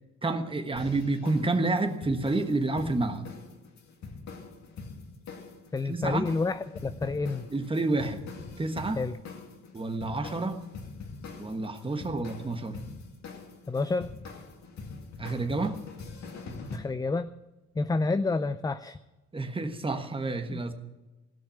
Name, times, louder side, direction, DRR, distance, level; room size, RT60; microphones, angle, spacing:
voice 1, 0.2-3.3 5.9-6.3 7.5-8.2 8.6-9.0 9.7-10.7 11.4-12.8 15.2-15.8 19.3-20.7, right 2 dB, 15° right, 6 dB, 1.4 m, -29 dB
sound 1, 0.8-16.8, left 4 dB, 65° left, 2.3 m, -44 dB
voice 2, 5.7-7.5 9.0-9.1 13.7-14.1 16.7-17.3 17.7-19.0 20.5-20.6, left 3 dB, 15° left, 12 dB, 0.4 m, -29 dB
16.5 x 6.5 x 10.0 m, 1.1 s
cardioid pair, 90°, 30 cm